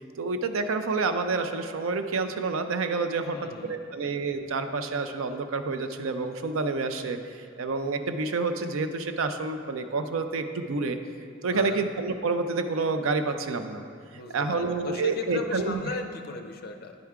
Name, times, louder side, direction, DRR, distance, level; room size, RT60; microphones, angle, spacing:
voice 1, 0.2-3.4 3.6-11.0 11.4-13.8 14.1-15.9, right 3 dB, 80° right, 8 dB, 0.5 m, -28 dB
voice 2, 3.1-3.9 11.5-11.8 14.1-17.0, left 3 dB, 45° left, 5 dB, 0.5 m, -37 dB
10.5 x 4.5 x 3.6 m, 2.2 s
head